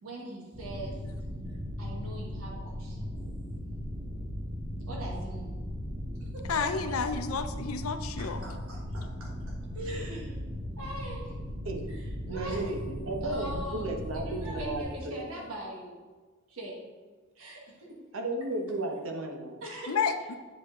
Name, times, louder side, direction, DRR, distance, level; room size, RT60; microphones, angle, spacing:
voice 1, 0.0-1.0 1.8-3.1 4.9-5.5 6.2-6.9 8.2-10.4 10.8-11.3 11.9-12.8 13.2-16.0 16.5-16.8 17.3-17.6 19.6-20.0, right 1 dB, 85° right, -2 dB, 1.6 m, -41 dB
sound 1, 0.5-14.8, equal, 20° right, 1.5 m, -37 dB
voice 2, 6.5-8.5 19.9-20.3, left 5 dB, 85° left, 8 dB, 0.6 m, -30 dB
voice 3, 11.6-12.0 12.3-15.5 18.1-19.6, right 2 dB, 65° right, 3 dB, 1.0 m, -34 dB
8.8 x 5.1 x 3.7 m, 1.4 s
head